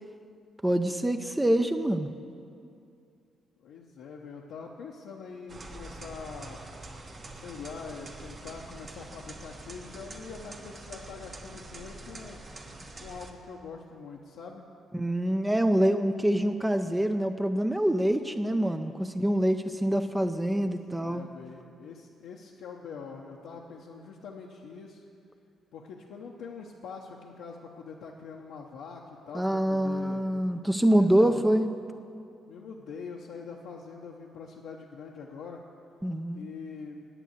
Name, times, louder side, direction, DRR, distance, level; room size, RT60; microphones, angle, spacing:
voice 1, 0.6-2.1 14.9-21.2 29.3-31.7 36.0-36.5, right 1 dB, 10° right, 7 dB, 0.4 m, -25 dB
voice 2, 3.6-6.6 7.3-12.4 13.0-14.6 20.4-20.7 21.0-25.0 25.7-30.2 30.9-31.4 32.5-35.6 36.3-37.1, left 5 dB, 85° left, -2 dB, 0.8 m, -44 dB
sound 1, 5.5-13.3, right 2 dB, 40° right, 1.1 m, -45 dB
9.0 x 8.1 x 8.0 m, 2.5 s
cardioid pair, 90°, 0 cm